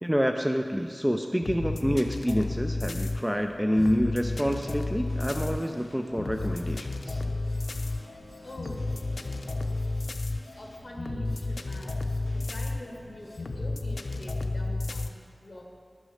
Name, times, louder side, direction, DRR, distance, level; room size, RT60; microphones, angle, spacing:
voice 1, 0.0-7.2, equal, 5° right, 5 dB, 0.4 m, -27 dB
sound 1, 1.4-15.1, left 2 dB, 85° left, 0.5 m, -32 dB
Drum kit, 3.4-14.3, equal, 10° left, 1.7 m, -53 dB
sound 2, 4.9-10.9, left 1 dB, 70° left, 0.9 m, -51 dB
voice 2, 8.4-8.9 10.6-12.0 12.3-15.2 15.4-15.6, equal, 45° left, 0 dB, 1.7 m, -44 dB
11.0 x 6.3 x 6.4 m, 2.2 s
wide cardioid pair, 75°, 0 cm